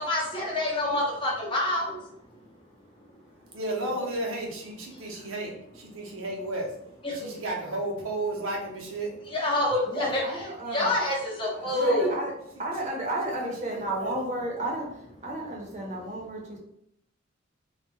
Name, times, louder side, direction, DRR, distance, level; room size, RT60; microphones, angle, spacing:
voice 1, 0.0-1.9 7.0-7.1 9.3-10.2 10.7-12.2, left 1 dB, 25° left, -3 dB, 0.6 m, -26 dB
voice 2, 3.5-6.7 7.1-9.1 11.7-12.1 12.8-12.9 13.4-14.1, right 1 dB, 90° right, -1 dB, 0.7 m, -33 dB
voice 3, 9.8-10.9 11.5-12.3 12.6-14.9 15.2-16.6, right 1 dB, 35° right, -2 dB, 0.6 m, -33 dB
2.2 x 2.1 x 3.0 m, 0.75 s
head